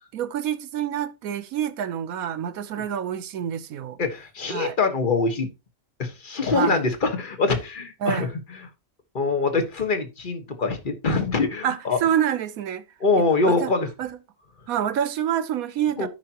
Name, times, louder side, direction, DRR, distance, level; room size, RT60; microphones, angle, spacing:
voice 1, 0.1-4.0 4.5-4.8 6.5-6.8 8.0-8.3 11.6-12.8 13.2-13.7 14.0-14.2 14.7-16.1, right 9 dB, 75° right, 1.2 m, -27 dB
voice 2, 4.0-5.5 6.0-8.3 9.1-12.0 13.0-13.9 16.0-16.1, left 3 dB, 35° left, 1.5 m, -24 dB
13.5 x 5.9 x 2.9 m
omnidirectional pair, 1.5 m